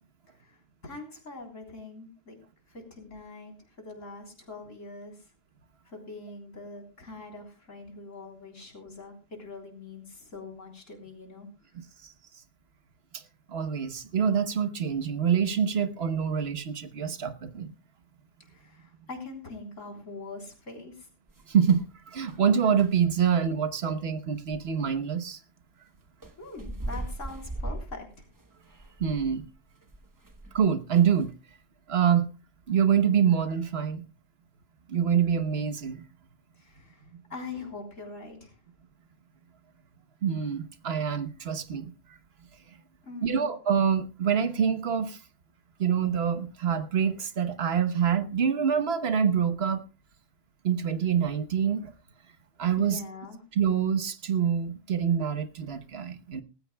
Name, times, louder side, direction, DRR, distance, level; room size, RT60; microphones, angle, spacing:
voice 1, 0.4-2.4 2.7-5.3 5.9-11.5 18.4-21.1 26.4-28.3 36.6-38.6 43.0-43.5 52.8-53.4, left 3 dB, 80° left, 4.1 m, -43 dB
voice 2, 11.7-12.1 13.1-13.2 13.5-17.7 21.5-25.4 29.0-29.4 30.5-31.3 31.9-32.3 32.7-34.0 34.9-36.0 40.2-41.9 43.2-45.2 45.8-49.8 50.6-51.9 52.6-53.0 53.5-56.4, right 7 dB, 55° right, 1.3 m, -26 dB
sound 1, 21.3-21.9 22.3-22.4 22.8-23.1 24.5-24.7 26.2-30.7 31.0-31.2, right 1 dB, 20° right, 0.8 m, -39 dB
19.0 x 15.5 x 2.3 m
omnidirectional pair, 1.3 m